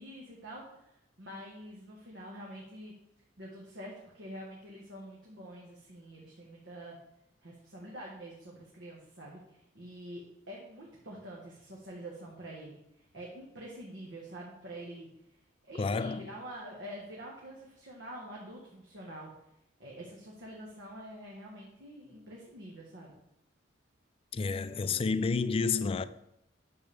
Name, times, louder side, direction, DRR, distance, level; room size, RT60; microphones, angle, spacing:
voice 1, 0.0-2.9 3.4-7.0 7.4-15.1 15.7-19.3 19.8-23.2, right 1 dB, 70° right, 1.5 m, -46 dB
voice 2, 15.8-16.3 24.3-26.0, left 4 dB, 30° left, 0.3 m, -30 dB
9.6 x 7.0 x 3.5 m
head